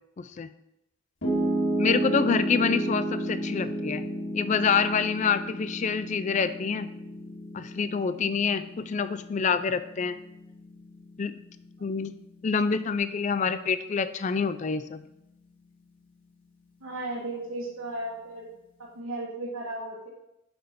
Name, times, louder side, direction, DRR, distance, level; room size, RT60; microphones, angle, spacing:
voice 1, 0.2-0.5 1.8-4.0 4.3-6.9 7.5-10.2 11.2-11.4 11.8-12.1 12.4-15.0, left 5 dB, 35° left, 12 dB, 0.3 m, -27 dB
Piano, 1.2-13.4, right 1 dB, 65° left, 1.8 m, -32 dB
voice 2, 16.8-18.5 18.9-20.1, right 2 dB, 80° right, -5 dB, 1.4 m, -35 dB
5.8 x 5.0 x 5.5 m, 0.85 s
head